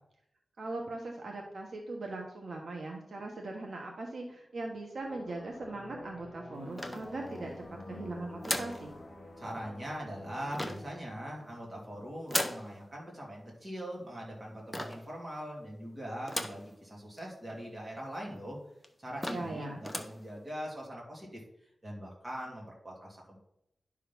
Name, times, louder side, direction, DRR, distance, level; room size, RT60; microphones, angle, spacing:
voice 1, 0.6-7.5 7.9-8.9 19.3-19.8, right 2 dB, 65° right, 1 dB, 1.1 m, -40 dB
sound 1, 5.0-12.4, left 1 dB, 25° left, 1.5 m, -48 dB
sound 2, 6.8-7.5 8.4-8.9 10.5-11.0 12.3-12.7 14.7-15.1 16.3-16.7 17.2-17.3 17.5-17.6 18.3-18.4 18.8-18.9 19.2-19.6 19.8-20.2, left 1 dB, 5° left, 0.7 m, -36 dB
voice 2, 9.4-18.6 19.0-21.4 21.8-23.4, equal, 20° right, -3 dB, 2.8 m, -42 dB
10.5 x 3.7 x 6.0 m, 0.79 s
wide cardioid pair, 135°, 0 cm